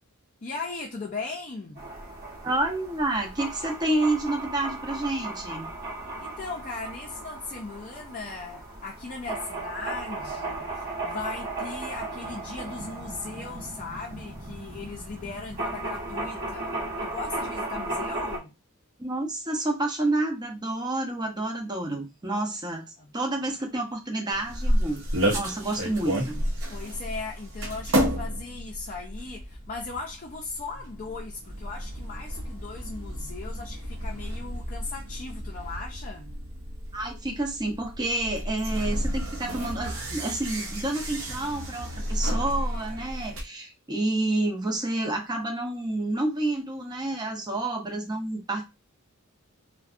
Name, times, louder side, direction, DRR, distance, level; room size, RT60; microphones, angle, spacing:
voice 1, 0.4-1.9 6.2-18.5 23.0-23.5 26.7-36.3, left 3 dB, 40° left, 0.5 m, -38 dB
sound 1, 1.8-18.4, right 2 dB, 45° right, 1.0 m, -36 dB
voice 2, 2.4-5.7 19.0-25.0 25.3-26.4 36.9-48.6, right 2 dB, 20° right, 0.6 m, -29 dB
sound 2, 24.3-43.4, equal, 70° right, 0.8 m, -31 dB
2.6 x 2.1 x 2.4 m
head